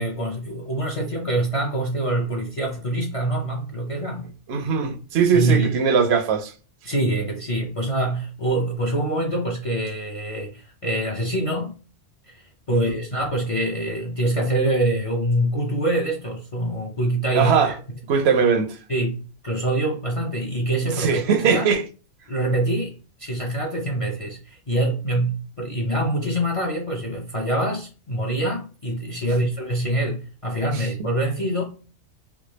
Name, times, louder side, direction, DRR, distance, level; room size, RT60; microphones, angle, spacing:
voice 1, 0.0-4.3 5.3-5.7 6.8-11.7 12.3-17.7 18.9-21.7 22.3-22.9 23.2-31.6, right 1 dB, 45° left, 0.5 m, -25 dB
voice 2, 4.5-6.5 12.7-13.0 17.3-17.7 18.1-18.8 20.9-21.8 30.7-30.9, right 6 dB, 65° right, 0.8 m, -20 dB
3.4 x 2.2 x 2.9 m
omnidirectional pair, 1.2 m